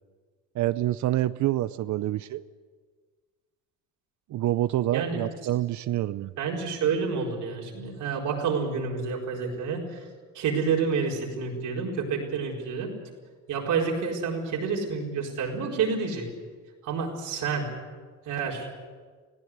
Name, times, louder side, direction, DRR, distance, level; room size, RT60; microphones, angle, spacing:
voice 1, 0.6-2.4 4.3-6.3, right 14 dB, 70° right, 14 dB, 0.6 m, -27 dB
voice 2, 6.4-10.1 10.3-12.9 13.5-16.3 16.8-17.7 18.2-18.7, right 5 dB, 90° right, -1 dB, 4.6 m, -29 dB
19.0 x 16.5 x 9.6 m, 1.5 s
cardioid pair, 90°, 30 cm